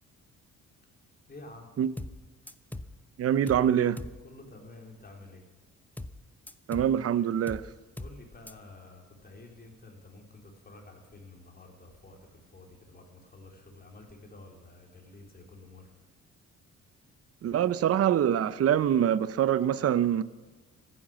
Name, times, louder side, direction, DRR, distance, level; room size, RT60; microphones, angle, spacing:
voice 1, 1.3-1.7 4.2-5.4 7.9-12.2 12.5-15.9, left 2 dB, 30° left, 3.9 m, -50 dB
sound 1, 2.0-2.2 2.5-3.0 3.5-3.7 4.0-4.2 6.0-6.2 6.5-7.0 7.5-7.7 8.0-8.2 8.5-8.6, left 1 dB, 5° left, 0.8 m, -40 dB
voice 2, 3.2-4.0 6.7-7.6 17.4-20.2, right 10 dB, 50° right, 0.7 m, -25 dB
14.5 x 10.0 x 7.5 m
cardioid pair, 90°, 30 cm